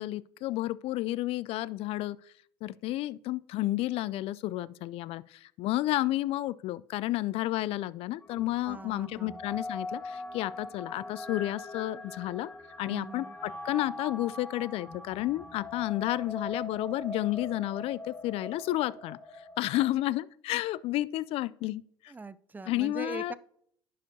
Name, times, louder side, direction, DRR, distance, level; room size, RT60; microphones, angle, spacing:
voice 1, 0.0-2.2 2.6-12.5 12.8-22.1 22.7-23.3, left 16 dB, 55° left, 0.4 m, -31 dB
sound 1, 8.2-19.9, left 2 dB, 15° left, 1.3 m, -42 dB
voice 2, 8.6-9.4 12.9-13.4 22.1-23.3, right 4 dB, 15° right, 0.4 m, -41 dB
10.5 x 6.7 x 2.8 m
hypercardioid pair, 70°, 12 cm